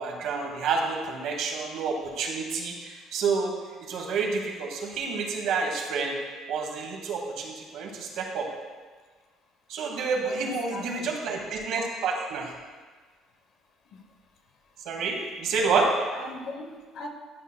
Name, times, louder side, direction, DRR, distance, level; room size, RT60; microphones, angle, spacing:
voice 1, 0.0-3.5 3.8-6.1 6.5-8.5 9.7-12.5 14.8-15.9, right 4 dB, 65° right, 1 dB, 1.2 m, -29 dB
voice 2, 10.1-11.2 13.9-14.0 16.1-17.1, left 2 dB, 55° left, 4 dB, 0.8 m, -40 dB
11.0 x 5.6 x 2.2 m, 1.4 s
cardioid pair, 140°, 0 cm